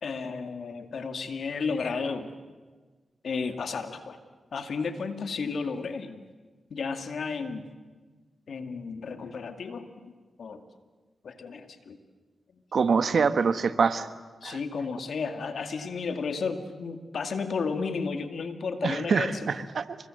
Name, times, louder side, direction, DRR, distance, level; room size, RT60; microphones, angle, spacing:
voice 1, 0.0-2.4 3.2-4.2 4.5-6.2 6.7-7.7 8.5-10.1 10.4-10.6 11.2-12.0 14.4-19.5, left 5 dB, 75° left, 8 dB, 2.2 m, -33 dB
voice 2, 12.7-14.1 14.4-14.6 18.8-20.0, right 5 dB, 70° right, 12 dB, 1.3 m, -25 dB
29.5 x 24.5 x 7.8 m, 1.4 s
cardioid pair, 45°, 0 cm